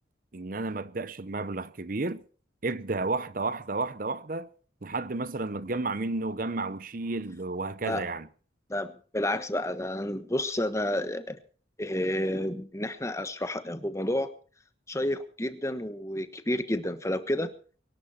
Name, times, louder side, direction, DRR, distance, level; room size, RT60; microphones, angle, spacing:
voice 1, 0.3-2.2 2.6-4.5 4.8-8.3, right 3 dB, 50° right, 0.8 m, -32 dB
voice 2, 8.7-11.4 11.8-14.3 14.9-17.5, left 1 dB, 15° left, 1.3 m, -30 dB
23.5 x 11.5 x 4.3 m
head